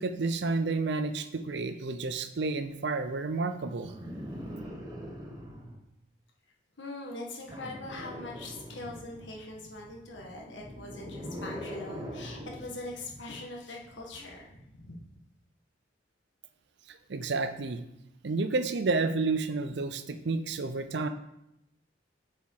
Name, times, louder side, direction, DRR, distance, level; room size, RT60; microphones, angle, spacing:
voice 1, 0.0-3.9 16.9-17.8 18.2-21.1, right 3 dB, 60° right, 9 dB, 0.5 m, -30 dB
sound 1, 3.8-5.8 7.5-9.2 10.5-12.8 14.1-14.3, equal, 20° right, 1.0 m, -41 dB
voice 2, 6.8-15.0, left 2 dB, 70° left, -1 dB, 1.4 m, -42 dB
6.9 x 4.6 x 4.7 m, 0.81 s
head